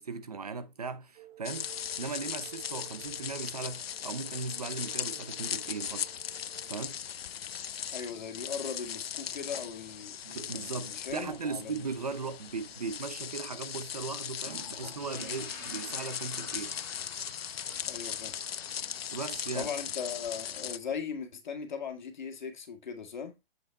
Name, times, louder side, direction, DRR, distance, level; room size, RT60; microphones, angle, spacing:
voice 1, 0.0-1.7 2.0-6.1 6.7-7.0 10.2-16.7 19.1-19.7, right 4 dB, 40° right, 0.8 m, -38 dB
sound 1, 1.1-6.9, right 13 dB, 75° right, 4.8 m, -55 dB
sound 2, 1.4-20.8, left 9 dB, 75° left, 0.6 m, -39 dB
voice 2, 7.9-11.9 17.9-18.3 19.5-23.3, left 6 dB, 50° left, 2.0 m, -39 dB
sound 3, 14.4-21.0, left 2 dB, 10° left, 2.4 m, -49 dB
7.9 x 5.6 x 3.5 m
hypercardioid pair, 180°, 30 cm